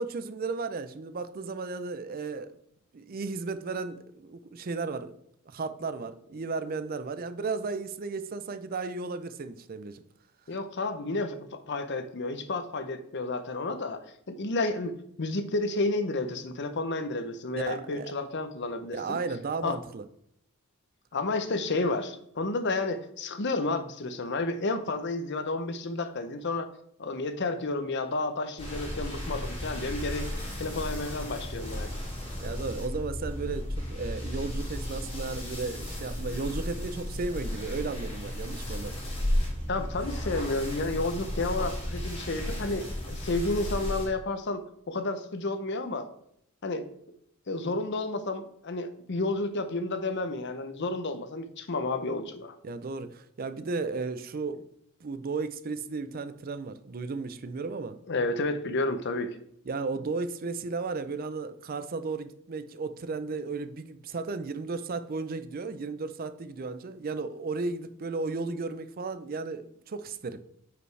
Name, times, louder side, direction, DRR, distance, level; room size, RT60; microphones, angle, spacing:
voice 1, 0.0-2.6 2.9-5.1 5.5-10.0 17.5-18.1 18.9-20.1 32.4-39.0 52.6-54.7 55.0-58.0 59.7-70.4, right 4 dB, 45° right, 0.5 m, -34 dB
voice 2, 10.5-19.2 19.6-19.8 21.1-26.7 27.0-30.3 30.6-31.9 39.7-46.1 46.6-46.8 47.5-52.6 58.1-59.4, left 2 dB, 55° left, 0.7 m, -31 dB
sound 1, 28.6-44.1, left 1 dB, 25° left, 2.4 m, -34 dB
9.3 x 5.1 x 3.3 m
head